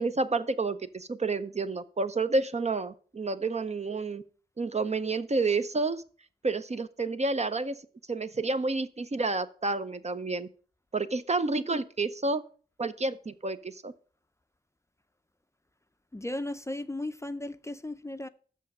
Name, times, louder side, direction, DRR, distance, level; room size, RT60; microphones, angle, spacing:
voice 1, 0.0-4.2 4.6-6.0 6.4-7.8 8.1-10.5 10.9-12.4 12.8-13.9, right 3 dB, 40° right, 0.6 m, -29 dB
voice 2, 16.1-18.3, left 1 dB, 15° left, 0.5 m, -35 dB
6.5 x 5.5 x 6.0 m
cardioid pair, 40°, 17 cm